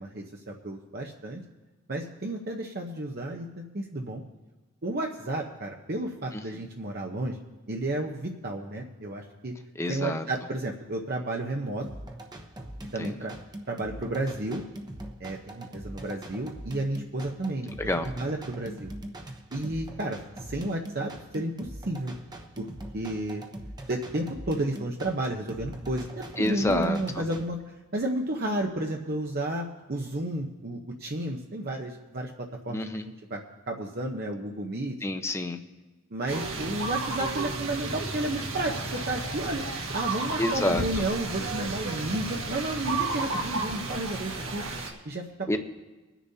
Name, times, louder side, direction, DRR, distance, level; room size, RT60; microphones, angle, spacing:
voice 1, 0.0-1.4 1.9-4.2 4.8-7.4 7.7-9.5 9.9-11.9 12.9-13.3 13.7-14.6 15.2-17.7 18.0-18.9 19.5-22.1 22.6-22.7 22.9-23.4 23.9-27.6 27.9-32.3 32.6-32.8 33.3-35.0 36.1-39.6 39.9-44.6 45.0-45.6, right 1 dB, 45° right, 0 dB, 0.8 m, -32 dB
voice 2, 9.8-10.3 13.0-13.2 17.8-18.1 26.4-27.2 32.7-33.0 35.0-35.6 40.4-41.0 45.5-45.6, left 1 dB, 15° left, 6 dB, 0.7 m, -28 dB
sound 1, 11.8-27.4, right 1 dB, 20° right, 0.9 m, -42 dB
sound 2, 36.3-44.9, right 3 dB, 65° right, 1.7 m, -32 dB
24.5 x 10.0 x 2.8 m, 1.2 s
head